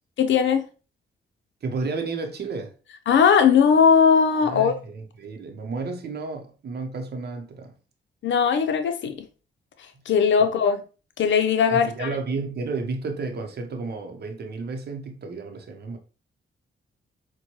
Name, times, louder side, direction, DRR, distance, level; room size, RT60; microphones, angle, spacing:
voice 1, 0.2-0.7 3.1-4.7 8.2-9.3 10.1-10.8 11.2-12.2, left 6 dB, 70° left, 0.6 m, -19 dB
voice 2, 1.6-2.7 4.4-7.7 10.4-10.5 11.7-16.0, right 4 dB, 55° right, 0.7 m, -32 dB
4.3 x 2.2 x 2.9 m
cardioid pair, 70°, 20 cm